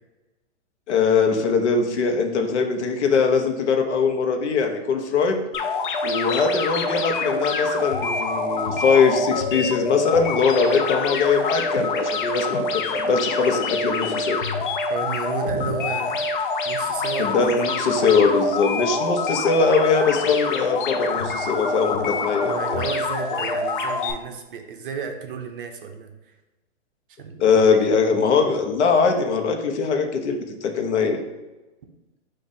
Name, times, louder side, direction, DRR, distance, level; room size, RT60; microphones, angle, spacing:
voice 1, 0.9-5.4 6.0-14.4 17.2-22.8 27.4-31.2, left 5 dB, 70° left, 4 dB, 0.9 m, -21 dB
sound 1, 5.5-24.1, left 3 dB, 45° left, 0.5 m, -26 dB
voice 2, 14.9-16.3 16.6-17.4 17.7-18.2 22.4-26.1 27.2-27.6, right 6 dB, 45° right, 5 dB, 0.6 m, -33 dB
4.7 x 2.6 x 4.1 m, 1.1 s
hypercardioid pair, 165°, 36 cm